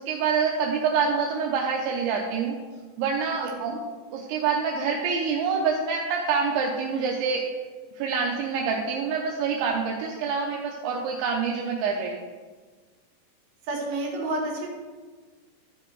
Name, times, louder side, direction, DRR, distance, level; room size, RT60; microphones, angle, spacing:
voice 1, 0.0-2.6 3.0-3.8 4.1-7.4 7.9-12.3, right 5 dB, 80° right, -1 dB, 3.0 m, -26 dB
voice 2, 13.7-14.7, right 2 dB, 60° right, -1 dB, 3.4 m, -29 dB
13.0 x 4.8 x 4.6 m, 1.4 s
omnidirectional pair, 5.3 m